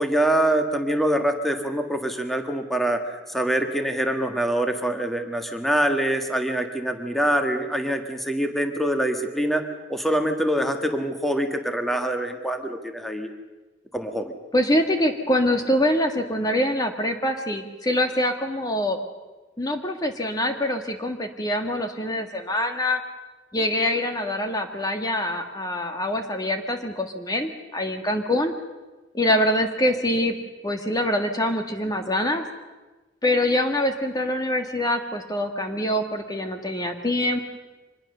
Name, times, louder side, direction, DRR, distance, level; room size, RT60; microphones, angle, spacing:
voice 1, 0.0-9.6 9.9-13.3 13.9-14.3, right 1 dB, ahead, 5 dB, 1.7 m, -24 dB
voice 2, 14.5-19.0 19.6-23.0 23.5-28.5 29.1-30.3 30.6-32.4 33.2-37.4, left 1 dB, 20° left, 5 dB, 1.6 m, -24 dB
25.0 x 21.0 x 6.8 m, 1.2 s
head